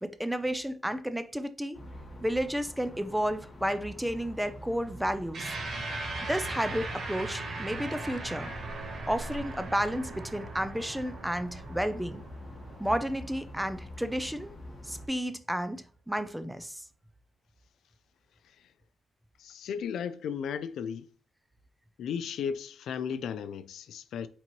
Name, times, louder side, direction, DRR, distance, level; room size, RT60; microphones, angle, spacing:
voice 1, 0.0-1.8 2.2-5.5 6.3-8.5 9.1-12.2 12.8-14.5 14.9-16.8, equal, 5° right, 0.4 m, -32 dB
sound 1, 1.7-15.1, left 1 dB, 25° left, 1.2 m, -45 dB
sound 2, 5.3-14.0, right 2 dB, 55° right, 1.2 m, -39 dB
voice 2, 19.4-21.1 22.0-24.3, left 7 dB, 80° left, 0.4 m, -35 dB
4.5 x 3.9 x 2.9 m
cardioid pair, 130°, 0 cm